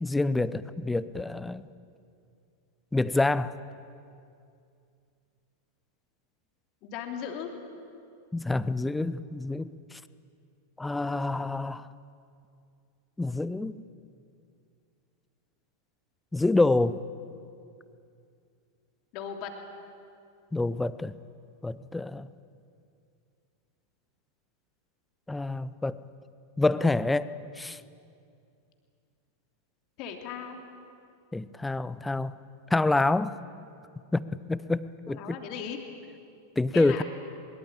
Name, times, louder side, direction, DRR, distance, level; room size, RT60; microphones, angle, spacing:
voice 1, 0.0-1.7 2.9-3.5 8.3-10.0 10.8-11.9 13.2-13.8 16.3-17.0 20.5-21.1 21.6-22.3 25.3-26.0 26.6-27.3 27.6-27.8 31.3-32.3 32.7-33.4 34.1-35.4 36.6-37.0, left 2 dB, 5° left, 16 dB, 0.7 m, -27 dB
voice 2, 6.8-7.5 19.1-19.5 30.0-30.6 35.1-35.8 36.7-37.0, left 8 dB, 40° left, 4 dB, 3.0 m, -37 dB
23.0 x 22.0 x 8.8 m, 2.4 s
figure-of-eight pair, 90°, 0 cm